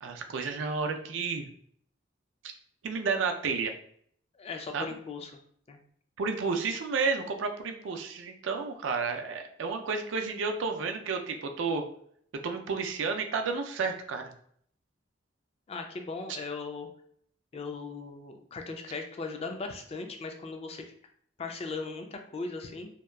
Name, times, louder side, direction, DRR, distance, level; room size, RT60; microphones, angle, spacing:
voice 1, 0.0-1.4 2.8-3.7 4.7-4.9 6.2-11.8 12.3-14.3, right 4 dB, 75° right, 5 dB, 0.4 m, -31 dB
voice 2, 4.3-5.3 5.7-5.8 15.7-16.9 17.5-20.9 21.4-22.9, left 4 dB, 35° left, 5 dB, 0.3 m, -38 dB
2.7 x 2.3 x 2.2 m, 0.63 s
head